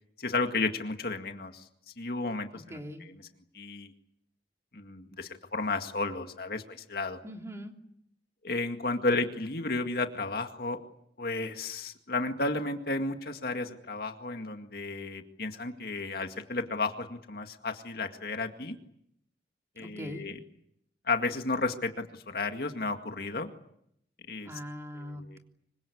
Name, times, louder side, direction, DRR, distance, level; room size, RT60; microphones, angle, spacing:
voice 1, 0.2-1.5 2.0-2.8 3.5-3.9 4.7-7.2 8.4-10.8 11.2-18.7 19.8-20.4 21.1-23.5 24.3-24.5 25.0-25.4, left 3 dB, 55° left, 6 dB, 2.0 m, -33 dB
voice 2, 2.5-3.1 7.2-7.7 19.8-20.3 24.4-25.4, equal, 15° right, 2 dB, 3.3 m, -41 dB
26.0 x 24.5 x 8.6 m, 0.74 s
head